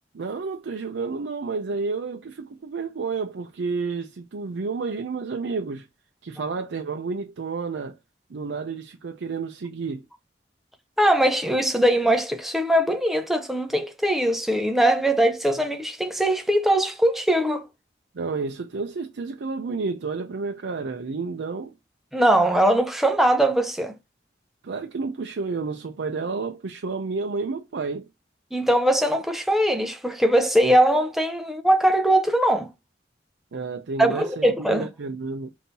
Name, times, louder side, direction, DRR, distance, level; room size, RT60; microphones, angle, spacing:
voice 1, 0.1-5.9 6.2-8.0 8.3-10.0 18.1-21.7 24.6-28.1 33.5-35.5, right 4 dB, 90° right, 0.5 m, -30 dB
voice 2, 11.0-17.6 22.1-23.9 28.5-32.7 34.0-34.9, right 1 dB, ahead, 0.5 m, -21 dB
5.3 x 2.7 x 2.7 m
head